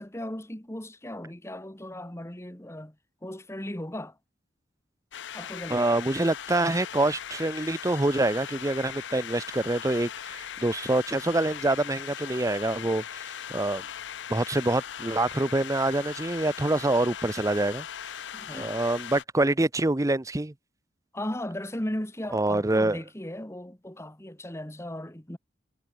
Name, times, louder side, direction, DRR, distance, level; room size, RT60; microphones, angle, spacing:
voice 1, 0.0-2.9 3.2-4.2 5.3-6.0 18.3-18.9 21.1-25.4, left 1 dB, 15° left, 1.6 m, -37 dB
sound 1, 5.1-19.2, left 9 dB, 65° left, 0.6 m, -39 dB
voice 2, 5.7-13.8 14.3-17.9 18.5-20.5 22.3-23.0, right 2 dB, 15° right, 0.6 m, -26 dB
head